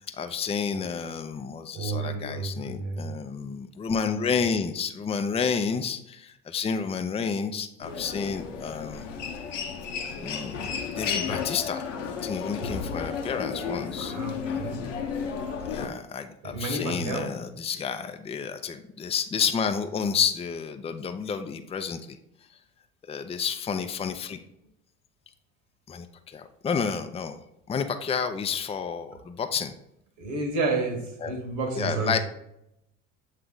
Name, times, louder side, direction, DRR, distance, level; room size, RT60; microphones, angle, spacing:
voice 1, 0.1-9.0 10.2-10.6 10.9-11.9 12.2-14.1 15.7-22.2 23.1-24.4 25.9-27.4 27.7-29.7 31.2-31.3 31.8-32.2, left 6 dB, 15° left, 7 dB, 0.5 m, -30 dB
voice 2, 1.7-3.1 14.0-14.9 16.4-17.4 30.2-32.2, right 3 dB, 70° right, 3 dB, 1.6 m, -31 dB
Human voice, 7.8-15.9, left 6 dB, 85° left, 0.7 m, -33 dB
7.7 x 3.3 x 3.8 m, 0.79 s
hypercardioid pair, 60°, 36 cm